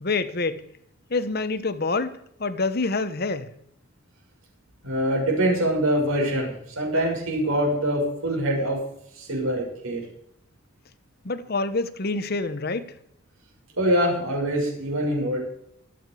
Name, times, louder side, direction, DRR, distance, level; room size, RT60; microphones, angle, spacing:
voice 1, 0.0-0.6 1.1-3.5 11.2-12.9, left 3 dB, 45° left, 1.0 m, -27 dB
voice 2, 4.8-8.8 9.1-10.0 13.8-15.4, right 1 dB, 80° right, 6.7 m, -24 dB
24.5 x 8.9 x 4.9 m
head